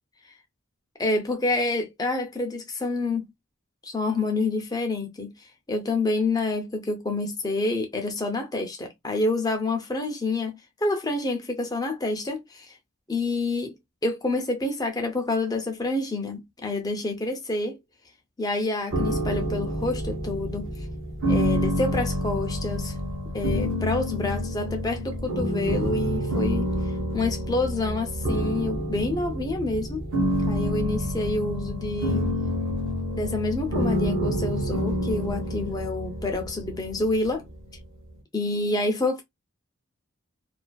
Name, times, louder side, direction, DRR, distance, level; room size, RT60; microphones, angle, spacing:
voice 1, 1.0-3.3 3.8-5.3 5.7-12.8 13.1-13.7 14.0-17.8 18.4-20.7 21.3-23.0 23.3-26.7 27.1-30.0 30.5-32.3 33.2-37.4 38.3-39.2, left 2 dB, 15° left, 0.5 m, -28 dB
sound 1, 18.9-37.9, equal, 60° right, 0.8 m, -28 dB
2.4 x 2.3 x 2.2 m
head